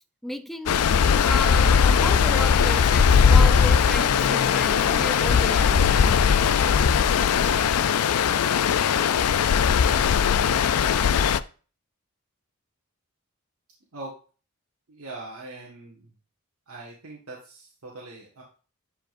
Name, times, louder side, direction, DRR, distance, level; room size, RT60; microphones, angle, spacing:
voice 1, 0.2-0.8 1.2-6.1, left 1 dB, ahead, 9 dB, 0.5 m, -33 dB
Stream, 0.7-11.4, left 7 dB, 90° left, 0.4 m, -19 dB
voice 2, 14.9-16.1 16.7-18.4, right 2 dB, 75° right, -3 dB, 1.7 m, -41 dB
11.5 x 5.1 x 2.6 m, 0.37 s
head